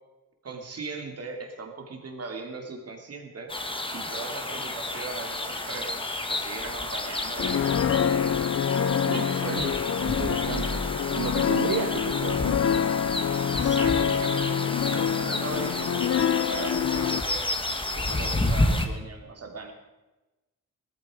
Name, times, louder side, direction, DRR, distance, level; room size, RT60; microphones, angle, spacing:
voice 1, 0.4-3.6 3.9-6.0 6.3-7.7 9.1-9.7 10.5-10.7 13.6-17.6 17.9-19.7, right 4 dB, 45° right, 3 dB, 2.9 m, -39 dB
sound 1, 3.5-18.9, left 2 dB, 15° left, 1.4 m, -31 dB
sound 2, 7.4-17.2, left 8 dB, 45° left, 0.5 m, -26 dB
voice 2, 9.1-10.9 11.1-12.9, right 6 dB, 70° right, 2 dB, 1.4 m, -34 dB
sound 3, 10.3-12.8, equal, 85° right, 3.3 m, -39 dB
19.5 x 13.5 x 5.0 m, 1.1 s
wide cardioid pair, 140°, 33 cm